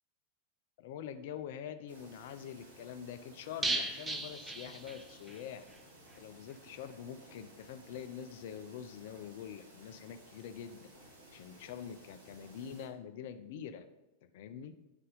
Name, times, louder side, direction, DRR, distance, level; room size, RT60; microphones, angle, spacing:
voice 1, 0.8-5.7 6.2-13.9 14.3-14.7, left 8 dB, 50° left, 10 dB, 0.4 m, -45 dB
sound 1, 1.9-12.9, right 1 dB, 80° right, 2.7 m, -57 dB
sound 2, 3.6-5.4 5.7-5.8 6.1-6.2, right 2 dB, 15° right, 0.8 m, -36 dB
9.0 x 5.4 x 3.8 m, 1.0 s
figure-of-eight pair, 90°, 0 cm